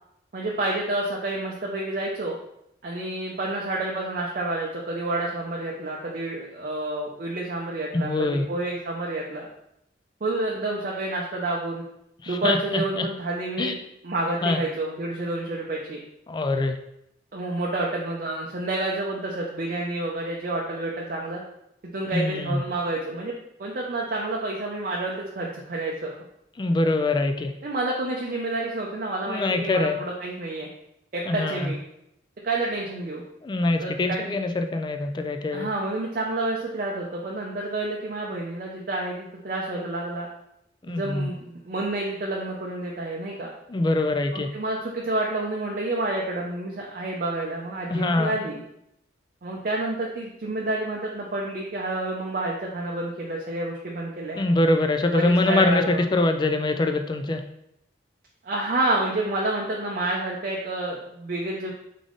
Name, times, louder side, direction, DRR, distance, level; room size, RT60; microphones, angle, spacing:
voice 1, 0.3-2.4 2.8-9.5 10.2-11.8 12.3-13.8 14.0-16.0 17.3-21.4 21.9-23.3 23.6-26.1 27.6-30.7 31.1-31.8 32.4-33.2 33.8-34.2 35.5-40.3 40.9-43.5 44.3-48.6 49.4-54.4 55.1-56.0 58.4-61.7, right 2 dB, 45° right, -2 dB, 0.5 m, -29 dB
voice 2, 7.9-8.5 12.2-13.1 13.6-13.7 14.4-14.6 16.3-16.8 22.1-22.6 26.6-27.5 29.3-30.0 31.3-31.7 33.4-35.7 40.8-41.3 43.7-44.5 47.9-48.4 54.4-57.4, left 2 dB, 25° left, 6 dB, 0.3 m, -24 dB
3.7 x 3.5 x 3.7 m, 0.80 s
head